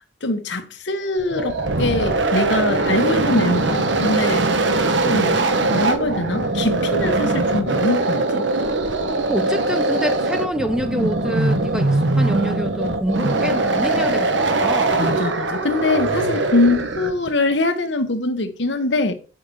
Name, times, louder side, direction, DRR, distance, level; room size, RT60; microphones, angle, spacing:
voice 1, 0.2-4.5 5.0-8.5 15.0-19.1, left 2 dB, 70° left, 1.2 m, -23 dB
sound 1, 1.2-17.3, right 2 dB, 80° right, 1.2 m, -21 dB
voice 2, 5.2-6.1 9.3-15.0, equal, 5° right, 0.8 m, -27 dB
8.4 x 5.8 x 5.4 m
head